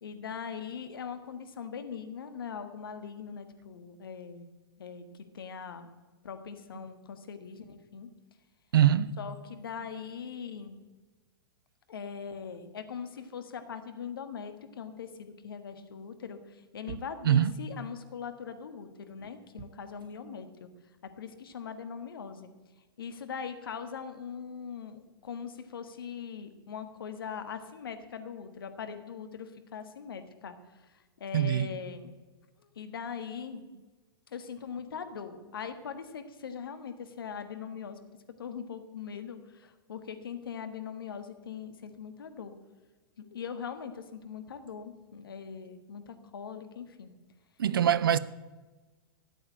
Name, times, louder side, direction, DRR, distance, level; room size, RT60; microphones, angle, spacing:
voice 1, 0.0-4.5 4.8-5.9 6.2-8.1 9.2-10.8 11.9-20.7 21.2-22.5 23.0-30.6 31.2-32.1 32.6-33.6 34.3-38.0 38.4-42.5 43.2-47.1, left 7 dB, 70° left, 1.5 m, -41 dB
voice 2, 8.7-9.1 17.2-17.5 31.3-31.7 47.6-48.2, right 10 dB, 65° right, 0.6 m, -23 dB
13.5 x 8.7 x 8.6 m
figure-of-eight pair, 105°, 12 cm